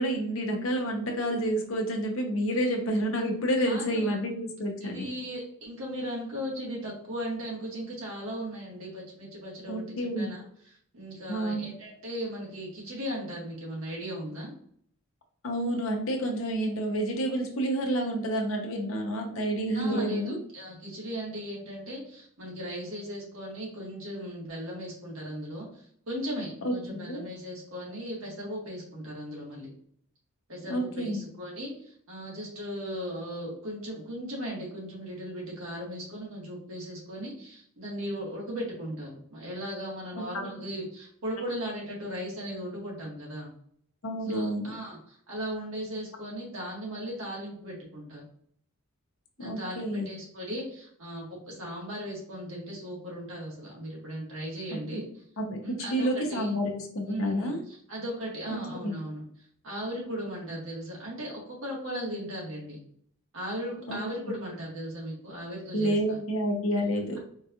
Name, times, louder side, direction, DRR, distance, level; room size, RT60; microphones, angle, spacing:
voice 1, 0.0-5.1 9.7-10.3 11.3-11.7 15.4-20.4 26.6-27.2 30.7-31.2 40.3-40.5 44.0-44.7 49.4-50.1 54.7-54.8 55.4-57.6 58.5-59.0 63.9-64.0 65.7-67.2, right 1 dB, 65° left, 2 dB, 0.8 m, -29 dB
voice 2, 3.6-4.2 4.8-10.4 10.9-14.5 19.7-25.7 26.1-29.7 30.5-43.5 44.3-48.2 49.4-55.1 55.6-56.5 57.1-59.2 59.6-62.8 63.3-66.2, equal, 70° right, -3 dB, 1.6 m, -37 dB
4.6 x 2.4 x 2.8 m, 0.64 s
head